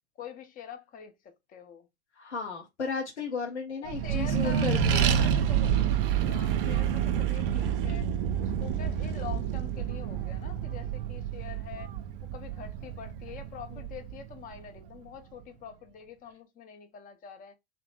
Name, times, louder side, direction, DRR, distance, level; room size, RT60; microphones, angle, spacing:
voice 1, 0.2-1.9 3.8-5.8 6.2-8.1 8.4-11.9 12.3-17.6, left 7 dB, 25° left, 0.6 m, -45 dB
voice 2, 2.1-5.1 13.7-13.8, left 5 dB, 85° left, 0.6 m, -34 dB
Accelerating revving vroom, 3.9-14.8, right 8 dB, 55° right, 0.5 m, -28 dB
2.8 x 2.1 x 3.1 m
figure-of-eight pair, 80°, 33 cm